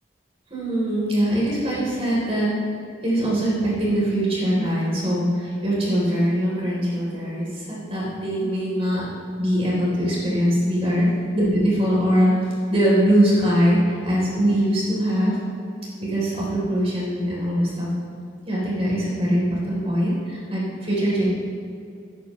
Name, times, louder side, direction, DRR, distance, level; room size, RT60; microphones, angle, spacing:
voice 1, 0.5-2.5 3.0-9.0 9.4-11.1 11.3-12.3 12.7-15.4 16.0-17.9 18.4-21.3, equal, 30° right, -6 dB, 3.3 m, -22 dB
16.0 x 11.5 x 3.1 m, 2.5 s
head